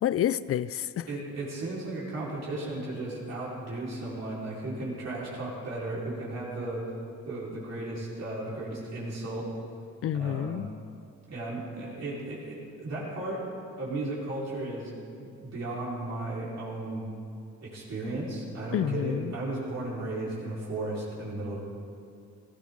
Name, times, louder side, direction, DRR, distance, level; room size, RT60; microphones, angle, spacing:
voice 1, 0.0-1.1 10.0-10.7 18.7-19.4, left 10 dB, 50° left, 17 dB, 0.4 m, -29 dB
voice 2, 1.1-6.8 7.2-9.5 10.1-10.6 11.3-13.4 13.8-14.9 15.2-17.1 17.6-21.6, right 2 dB, 55° right, -7 dB, 4.4 m, -35 dB
18.0 x 13.5 x 3.8 m, 2.4 s
cardioid pair, 90°, 30 cm